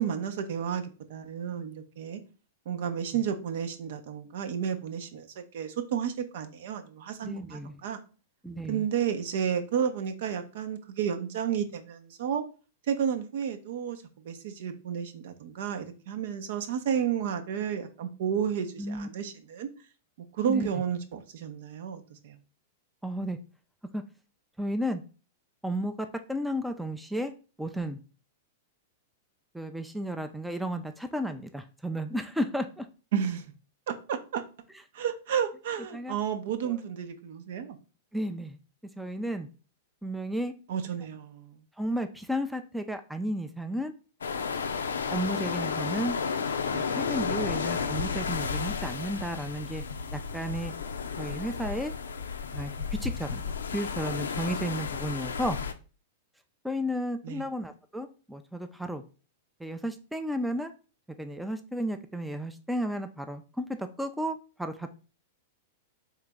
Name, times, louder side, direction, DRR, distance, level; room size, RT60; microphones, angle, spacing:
voice 1, 0.0-2.2 2.7-8.0 8.7-12.4 12.9-19.7 20.3-22.4 33.1-33.5 33.9-34.4 34.9-37.8 40.7-41.6 57.2-57.5, right 8 dB, 65° right, 8 dB, 0.7 m, -32 dB
voice 2, 7.2-7.8 8.4-8.8 18.8-19.1 20.5-20.7 23.0-23.4 23.9-24.0 24.6-25.0 25.6-27.3 27.6-28.0 29.5-32.9 35.9-36.2 36.6-36.7 38.1-38.6 39.0-39.5 40.0-40.5 41.8-43.9 45.1-46.2 46.7-49.8 50.1-50.7 51.2-51.9 52.5-52.7 53.0-53.4 53.7-55.6 56.6-59.0 59.6-60.7 61.2-64.9, equal, 5° right, 7 dB, 0.4 m, -33 dB
sound 1, 44.2-55.7, left 5 dB, 85° left, 0.4 m, -32 dB
3.7 x 3.2 x 3.5 m, 0.35 s
hypercardioid pair, 110°, 0 cm